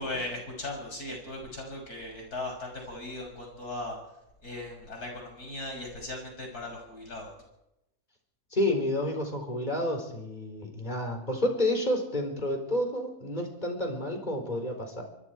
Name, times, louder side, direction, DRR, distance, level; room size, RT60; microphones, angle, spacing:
voice 1, 0.0-4.0 4.4-7.3, left 2 dB, 70° left, 1 dB, 6.9 m, -38 dB
voice 2, 8.5-15.0, left 1 dB, 25° left, 4 dB, 4.3 m, -30 dB
24.0 x 23.5 x 4.7 m, 0.86 s
omnidirectional pair, 1.7 m